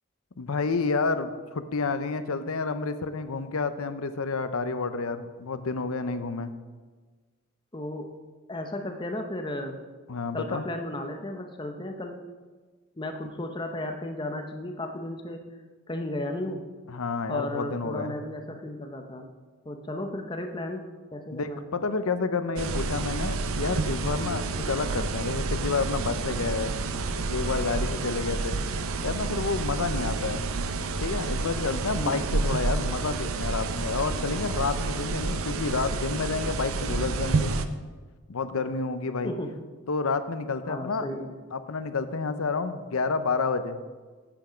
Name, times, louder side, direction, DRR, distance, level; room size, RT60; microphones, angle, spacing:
voice 1, 0.4-6.5 10.1-10.6 16.9-18.1 21.3-26.7 27.3-28.6 29.0-30.5 31.0-37.5 38.3-39.3 39.9-41.1 41.5-43.8, left 4 dB, 75° left, 11 dB, 0.7 m, -29 dB
voice 2, 7.7-8.1 8.5-9.8 10.3-12.2 13.0-15.5 15.9-16.6 17.3-19.3 19.6-21.6 32.0-32.3 39.2-39.5 40.6-41.3, left 1 dB, 20° left, 5 dB, 0.7 m, -34 dB
sound 1, 22.6-37.7, right 3 dB, 75° right, 0.6 m, -29 dB
8.8 x 8.0 x 5.0 m, 1.4 s
head